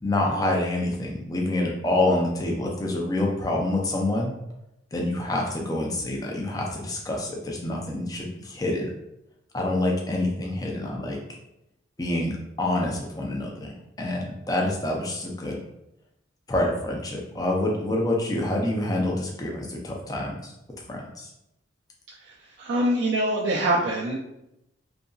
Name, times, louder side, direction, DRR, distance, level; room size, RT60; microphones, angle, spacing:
voice 1, 0.0-4.3 4.9-8.9 9.5-11.2 12.0-13.7 14.0-15.6 16.5-20.5 20.9-21.3, left 1 dB, 20° left, -1 dB, 0.4 m, -27 dB
voice 2, 22.2-24.2, right 1 dB, 60° right, -5 dB, 0.4 m, -24 dB
2.7 x 2.5 x 2.3 m, 0.85 s
head